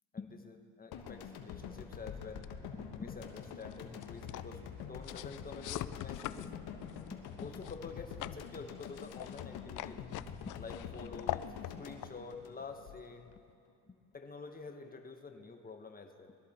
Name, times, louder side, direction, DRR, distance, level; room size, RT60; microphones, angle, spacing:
voice 1, 0.1-4.6 4.9-6.6 7.1-10.0 10.4-11.5 11.8-13.3 13.9-16.4, left 4 dB, 25° left, 5 dB, 1.2 m, -48 dB
sound 1, 0.9-13.1, left 7 dB, 80° left, 1.4 m, -46 dB
sound 2, 2.4-13.5, left 14 dB, 55° left, 0.5 m, -45 dB
21.5 x 13.0 x 4.3 m, 2.4 s
cardioid pair, 105°, 37 cm